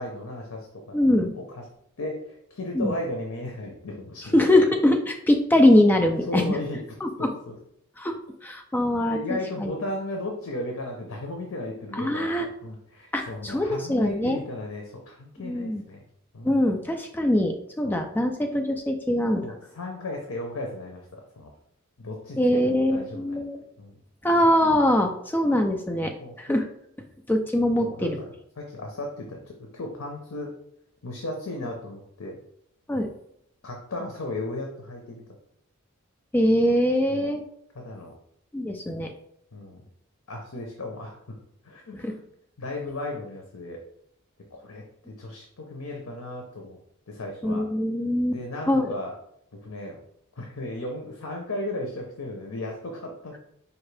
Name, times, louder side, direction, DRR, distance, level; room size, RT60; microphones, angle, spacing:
voice 1, 0.0-1.1 1.3-1.6 2.0-4.4 6.3-6.8 7.2-7.5 9.1-16.0 16.3-16.5 17.8-18.0 19.4-21.5 22.0-23.4 23.8-24.0 26.2-26.4 27.8-30.5 31.0-32.4 33.6-35.2 37.1-37.3 37.7-38.1 39.5-39.9 40.3-41.4 41.6-42.2 42.6-43.8 44.5-46.8 47.1-47.7 48.3-49.1 49.5-50.0 50.4-53.4, left 1 dB, 80° left, 1 dB, 0.7 m, -35 dB
voice 2, 0.9-1.3 2.7-3.0 4.3-6.6 7.0-7.3 8.0-8.1 8.4-9.7 12.0-12.5 13.1-14.4 15.4-15.8 16.4-19.5 22.4-23.6 24.2-26.1 26.4-26.7 27.3-28.2 32.9-33.1 36.3-37.4 38.5-39.1 41.9-42.1 47.4-48.4 48.7-48.9, left 1 dB, 10° left, 4 dB, 0.3 m, -22 dB
4.8 x 2.7 x 3.3 m, 0.72 s
head